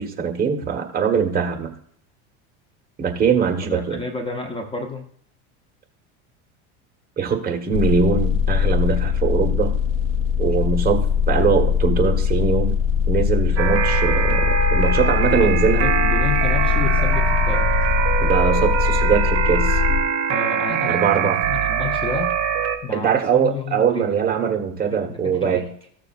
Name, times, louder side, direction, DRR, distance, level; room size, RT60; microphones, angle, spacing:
voice 1, 0.0-1.7 3.0-4.0 7.2-9.7 10.4-12.7 13.1-15.8 18.2-19.8 20.9-21.4 22.9-25.7, right 6 dB, 25° right, 4 dB, 1.3 m, -21 dB
voice 2, 3.6-5.1 15.4-17.7 20.3-22.3 22.8-24.2 24.9-25.7, left 4 dB, 15° left, 5 dB, 0.7 m, -31 dB
sound 1, 7.7-20.0, left 8 dB, 55° left, 0.7 m, -21 dB
sound 2, 13.6-22.8, right 8 dB, 45° right, 1.4 m, -23 dB
14.5 x 6.7 x 2.5 m, 0.65 s
supercardioid pair, 130°, 34 cm